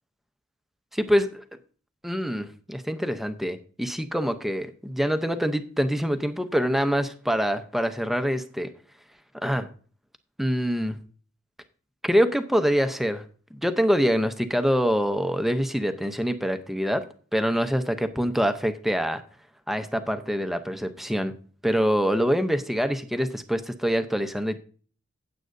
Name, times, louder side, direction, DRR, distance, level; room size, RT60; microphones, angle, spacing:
voice 1, 0.9-1.4 2.0-8.7 9.4-9.6 10.4-11.0 12.0-13.2 13.5-17.0 17.3-19.2 19.7-21.3 21.6-24.6, equal, ahead, 9 dB, 0.7 m, -25 dB
16.0 x 7.7 x 2.6 m, 0.43 s
head